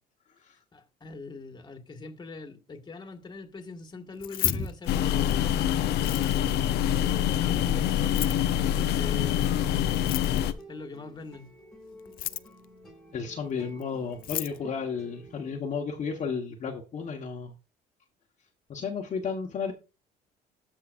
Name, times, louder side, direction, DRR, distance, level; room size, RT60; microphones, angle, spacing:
voice 1, 0.7-5.7 6.0-6.6 7.0-8.4 8.9-10.3 10.7-11.5, left 3 dB, 25° left, 1.7 m, -42 dB
Keys jangling, 4.1-5.5 5.9-6.6 8.0-8.5 9.9-10.6 12.0-12.6 13.8-13.9 14.1-14.6, left 15 dB, 60° left, 0.4 m, -33 dB
sound 1, 4.9-10.5, left 10 dB, 75° left, 0.8 m, -25 dB
sound 2, 6.8-15.6, equal, 5° left, 2.4 m, -51 dB
voice 2, 13.1-17.5 18.7-19.7, left 5 dB, 45° left, 1.3 m, -33 dB
13.5 x 5.8 x 2.6 m
cardioid pair, 110°, 17 cm